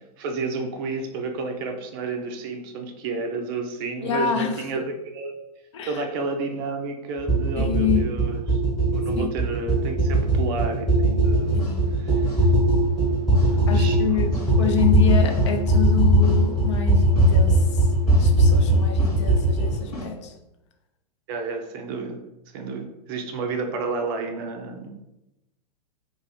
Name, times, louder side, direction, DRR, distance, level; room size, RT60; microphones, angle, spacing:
voice 1, 0.2-5.3 5.8-8.6 8.9-12.5 13.4-14.3 21.3-22.2 22.5-24.9, right 3 dB, 35° right, 0.4 m, -31 dB
voice 2, 4.0-4.6 5.7-6.0 7.6-8.1 9.2-9.3 11.5-12.0 13.7-17.9 18.2-20.3, left 8 dB, 45° left, 0.4 m, -27 dB
sound 1, 7.3-19.8, right 1 dB, 5° left, 1.2 m, -19 dB
sound 2, 11.2-20.1, left 2 dB, 70° left, 0.9 m, -42 dB
2.5 x 2.4 x 4.1 m
figure-of-eight pair, 100°, 20 cm